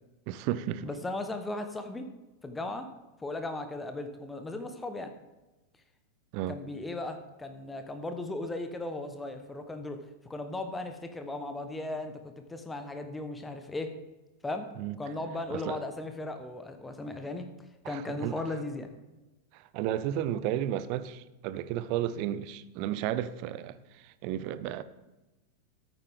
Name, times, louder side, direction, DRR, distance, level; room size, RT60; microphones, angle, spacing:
voice 1, 0.3-0.9 6.3-6.6 14.8-15.0 15.5-15.8 17.8-18.4 19.5-24.8, right 11 dB, 45° right, 0.6 m, -33 dB
voice 2, 0.8-2.1 2.4-2.9 3.2-5.1 6.5-10.0 10.3-14.0 14.4-14.7 15.0-17.5 17.8-18.9, left 2 dB, 10° left, 1.1 m, -37 dB
13.5 x 9.1 x 3.7 m
figure-of-eight pair, 90°, 0 cm